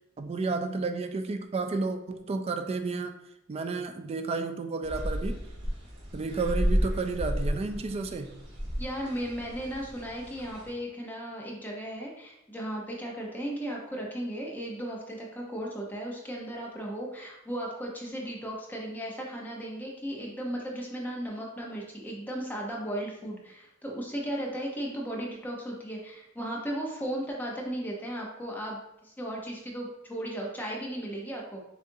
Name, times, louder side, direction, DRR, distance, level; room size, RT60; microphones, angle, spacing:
voice 1, 0.2-3.1 3.5-5.4 6.1-8.4, right 3 dB, 30° right, 7 dB, 0.3 m, -31 dB
sound 1, 4.8-10.7, equal, 60° right, 1.4 m, -32 dB
voice 2, 8.8-31.6, right 1 dB, 10° left, -2 dB, 0.7 m, -36 dB
6.4 x 2.5 x 2.6 m, 0.83 s
head